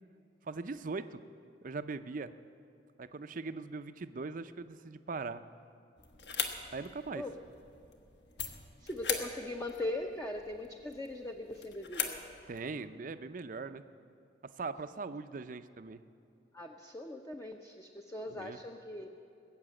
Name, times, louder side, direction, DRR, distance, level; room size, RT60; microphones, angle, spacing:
voice 1, 0.4-1.2 1.6-2.3 3.0-5.4 6.7-7.2 12.5-13.8 14.6-16.0 18.3-18.6, right 4 dB, 45° right, 11 dB, 0.5 m, -40 dB
sound 1, 6.0-12.7, left 6 dB, 65° left, 1.2 m, -41 dB
voice 2, 8.8-12.2 16.5-19.1, left 1 dB, 15° left, 3 dB, 0.6 m, -40 dB
20.0 x 7.3 x 8.8 m, 2.7 s
head